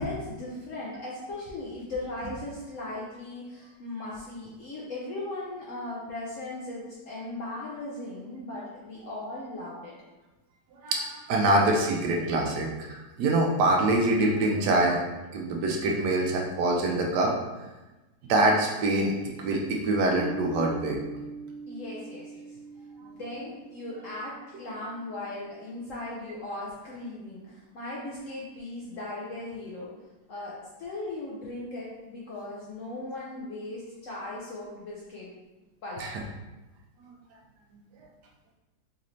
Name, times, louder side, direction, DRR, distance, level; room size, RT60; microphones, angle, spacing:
voice 1, 0.0-9.9 21.7-22.6 23.0-29.9 30.3-35.3 35.8-36.0, left 2 dB, 65° left, -5 dB, 0.8 m, -38 dB
voice 2, 10.8-15.0 15.3-17.3 18.3-21.0 36.0-36.1, right 2 dB, 75° right, 0 dB, 1.1 m, -25 dB
Piano, 20.1-25.5, right 2 dB, 50° left, 1.3 m, -42 dB
4.1 x 2.6 x 3.0 m, 1.1 s
omnidirectional pair, 1.9 m